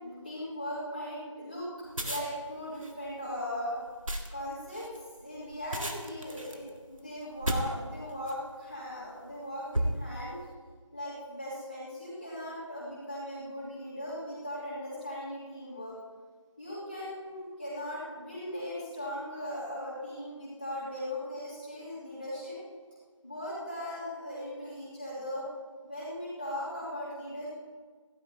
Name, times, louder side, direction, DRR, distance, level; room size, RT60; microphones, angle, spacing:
voice 1, 0.0-1.7 2.0-3.8 4.3-4.9 5.2-10.4 10.9-15.9 16.6-22.6 23.2-25.4 25.8-27.5, left 1 dB, 15° left, -11 dB, 3.1 m, -38 dB
sound 1, 1.8-8.5 9.1-9.3 9.7-10.4, right 1 dB, 90° right, 1.9 m, -35 dB
16.0 x 15.5 x 2.9 m, 1.5 s
figure-of-eight pair, 175°, 17 cm